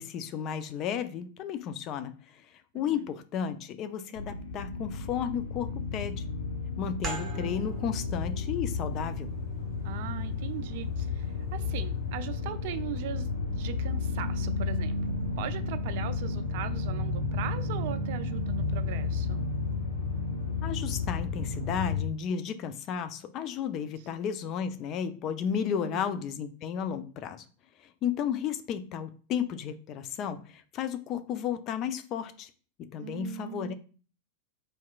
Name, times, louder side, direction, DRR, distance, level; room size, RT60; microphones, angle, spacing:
voice 1, 0.0-2.5 2.7-6.3 6.8-9.3 20.6-27.4 27.8-32.5 32.8-33.7, left 8 dB, 35° left, 0.3 m, -33 dB
voice 2, 2.7-3.1 7.2-7.5 9.8-15.0 15.4-19.5 25.7-26.2 33.0-33.7, right 11 dB, 50° right, 0.3 m, -40 dB
sound 1, 4.2-22.0, left 4 dB, 65° left, 0.8 m, -32 dB
sound 2, 7.0-12.3, right 4 dB, 15° right, 1.5 m, -44 dB
4.3 x 2.9 x 2.3 m
figure-of-eight pair, 90°, 0 cm